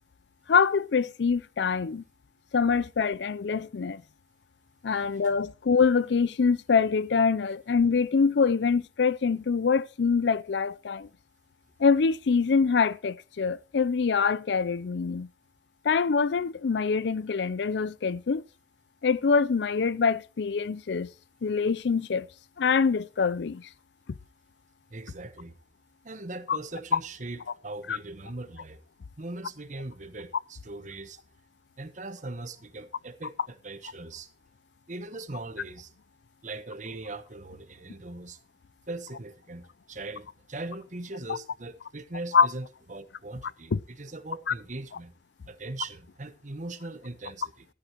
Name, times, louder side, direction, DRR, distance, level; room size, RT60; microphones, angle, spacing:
voice 1, 0.5-2.0 2.5-4.0 4.8-11.1 11.8-15.3 15.8-18.4 19.0-21.1 21.4-22.3 22.6-23.6 26.5-26.6 27.9-28.0 42.3-42.5 43.7-43.8 44.5-44.6, left 5 dB, 75° left, 0.5 m, -24 dB
voice 2, 24.9-25.5 26.0-28.8 29.2-31.2 31.8-34.3 34.9-35.9 36.4-38.4 38.9-45.1 45.5-47.7, right 2 dB, 45° right, 1.1 m, -40 dB
13.5 x 12.5 x 3.0 m
head